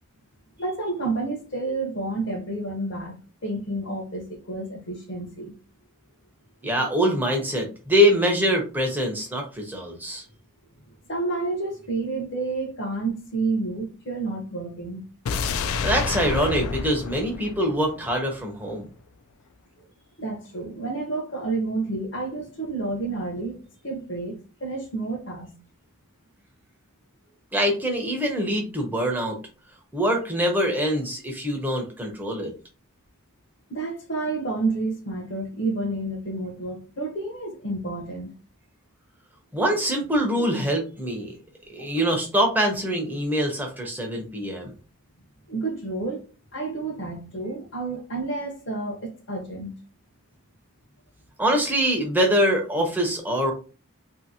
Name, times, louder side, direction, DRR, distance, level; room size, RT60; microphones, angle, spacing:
voice 1, 0.6-3.2 3.4-5.5 11.1-15.1 20.2-25.5 33.7-38.3 40.4-40.5 41.8-41.9 45.5-46.2 46.5-49.8, right 3 dB, 55° left, 0.8 m, -30 dB
voice 2, 6.6-10.2 15.8-18.9 27.5-29.4 29.9-32.5 39.5-41.3 41.7-44.7 51.4-53.5, equal, 10° right, 0.6 m, -24 dB
sound 1, 15.3-18.4 18.7-18.8, left 5 dB, 75° left, 0.3 m, -29 dB
2.7 x 2.7 x 2.7 m
head